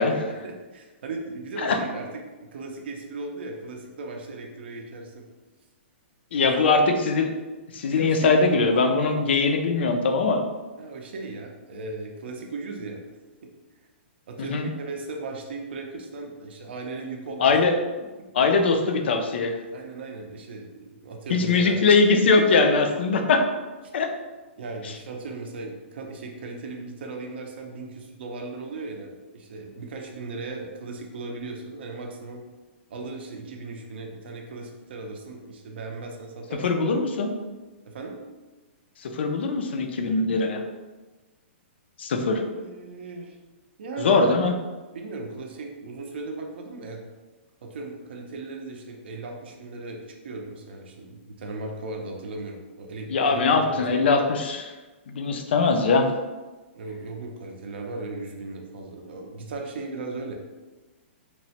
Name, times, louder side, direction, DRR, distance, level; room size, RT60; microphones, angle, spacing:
voice 1, 0.0-2.2 2.5-5.3 6.4-7.0 7.9-8.4 10.8-13.0 14.3-17.6 19.7-21.8 24.6-32.4 32.9-36.9 37.9-38.2 42.5-43.4 43.8-44.2 44.9-47.0 47.6-54.0 56.7-60.3, right 3 dB, 55° right, 1 dB, 0.4 m, -37 dB
voice 2, 6.3-7.3 7.7-10.4 14.4-14.7 17.4-17.7 18.3-19.5 21.3-23.4 23.9-24.1 36.6-37.3 39.0-40.6 42.0-42.4 44.0-44.5 53.1-54.7 55.1-56.1, left 4 dB, 60° left, 5 dB, 0.4 m, -21 dB
2.9 x 2.1 x 2.7 m, 1.2 s
hypercardioid pair, 175°, 7 cm